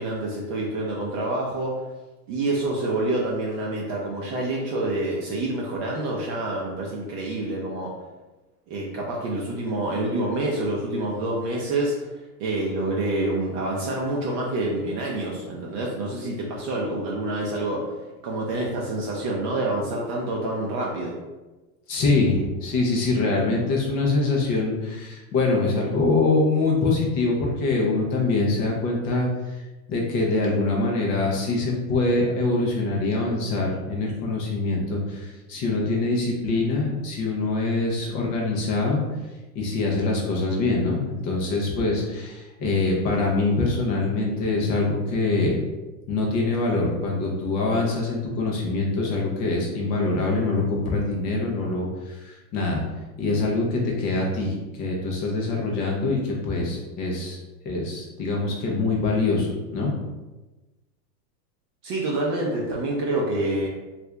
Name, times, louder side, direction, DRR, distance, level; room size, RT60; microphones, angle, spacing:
voice 1, 0.0-1.8 2.3-7.9 8.7-12.1 12.4-17.9 18.2-21.2 61.8-63.7, right 2 dB, 35° right, -3 dB, 0.5 m, -27 dB
voice 2, 21.9-29.6 29.9-39.0 39.5-45.6 46.1-52.8 53.2-57.4 57.7-59.9, left 3 dB, 20° left, -2 dB, 0.4 m, -24 dB
2.7 x 2.4 x 3.2 m, 1.1 s
hypercardioid pair, 125°, 47 cm